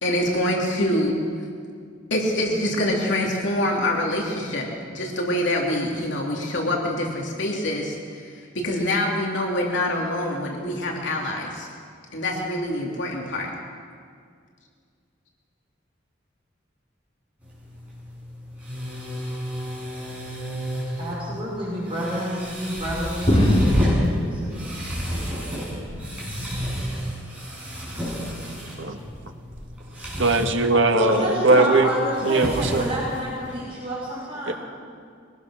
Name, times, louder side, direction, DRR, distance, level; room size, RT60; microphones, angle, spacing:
voice 1, 0.0-1.2 2.1-4.7 4.9-11.7 12.1-13.5, left 1 dB, 65° left, -1 dB, 3.2 m, -25 dB
sound 1, 17.4-33.6, equal, 5° right, 7.0 m, -31 dB
voice 2, 21.0-24.7 31.0-34.5, equal, 30° right, -7 dB, 6.0 m, -29 dB
sound 2, 23.3-25.5 25.9-26.8 27.7-28.0 29.0-29.2, left 1 dB, 30° left, 2.8 m, -24 dB
voice 3, 30.2-31.9 32.2-32.9 34.5-34.6, right 3 dB, 75° right, 4 dB, 1.6 m, -19 dB
23.5 x 18.5 x 6.3 m, 2.2 s
head